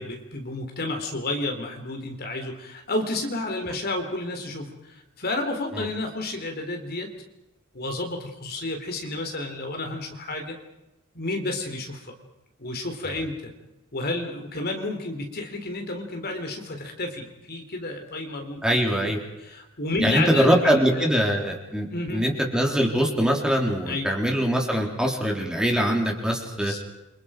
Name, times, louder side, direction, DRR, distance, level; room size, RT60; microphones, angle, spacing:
voice 1, 0.0-7.1 7.7-10.6 11.1-12.1 12.6-13.5 13.9-18.6 19.0-21.3 21.9-22.2 23.9-24.1 26.4-26.8, left 2 dB, 45° left, 4 dB, 3.9 m, -31 dB
voice 2, 18.6-19.2 20.0-26.7, equal, 5° right, 0 dB, 3.8 m, -23 dB
29.5 x 26.0 x 5.2 m, 0.93 s
head